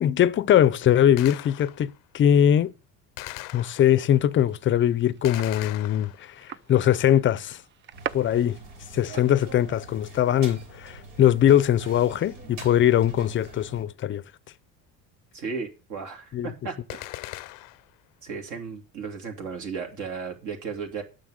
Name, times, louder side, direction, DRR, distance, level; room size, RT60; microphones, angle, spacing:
voice 1, 0.0-2.7 3.5-7.6 8.1-8.6 8.9-14.2 16.3-16.5, left 10 dB, 35° left, 0.5 m, -21 dB
Gunshot gunfire, 1.2-2.0 3.2-4.2 5.2-6.5 16.9-18.0, left 20 dB, 75° left, 0.6 m, -40 dB
sound 1, 4.3-10.0, right 9 dB, 35° right, 0.4 m, -42 dB
sound 2, 7.9-13.8, right 3 dB, 80° right, 5.4 m, -45 dB
voice 2, 15.3-17.3 18.2-21.0, right 5 dB, 60° right, 2.9 m, -35 dB
9.3 x 6.7 x 6.5 m
cardioid pair, 125°, 34 cm